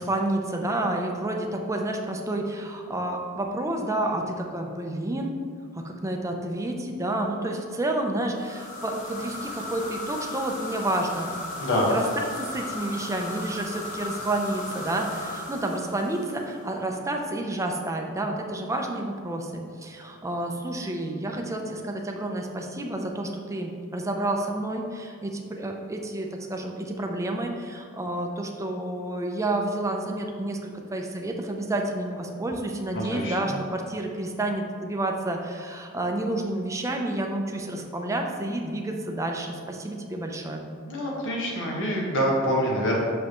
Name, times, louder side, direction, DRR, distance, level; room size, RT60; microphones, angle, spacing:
voice 1, 0.0-5.4 5.7-11.4 11.9-12.1 12.3-40.7, right 1 dB, 15° right, 2 dB, 0.5 m, -30 dB
sound 1, 8.3-16.8, left 2 dB, 40° left, 1.2 m, -36 dB
voice 2, 11.6-11.9 32.9-33.3 40.9-43.0, equal, 60° left, -3 dB, 1.4 m, -25 dB
6.2 x 5.3 x 3.0 m, 2.2 s
head